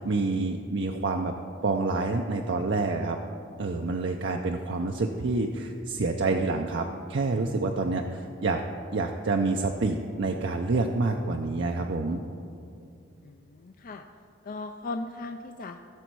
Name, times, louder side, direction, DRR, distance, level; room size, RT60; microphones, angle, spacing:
voice 1, 0.0-1.3 1.6-3.2 3.6-8.6 8.9-12.2, right 3 dB, 65° right, 3 dB, 0.5 m, -27 dB
voice 2, 13.2-14.1 14.4-15.8, left 2 dB, 45° left, 6 dB, 0.4 m, -37 dB
16.0 x 7.0 x 4.7 m, 2.5 s
head